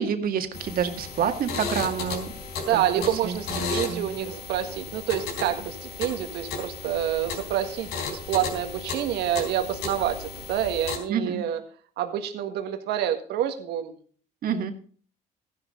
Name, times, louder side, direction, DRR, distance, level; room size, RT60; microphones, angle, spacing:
voice 1, 0.0-2.3 2.7-4.1 11.1-11.5 14.4-14.7, right 7 dB, 60° right, 7 dB, 2.0 m, -28 dB
sound 1, 0.5-11.0, left 5 dB, 75° left, 4.1 m, -34 dB
voice 2, 2.7-11.6 12.0-13.9, right 11 dB, 80° right, 6 dB, 1.7 m, -28 dB
15.0 x 11.0 x 3.8 m, 0.43 s
cardioid pair, 110°, 17 cm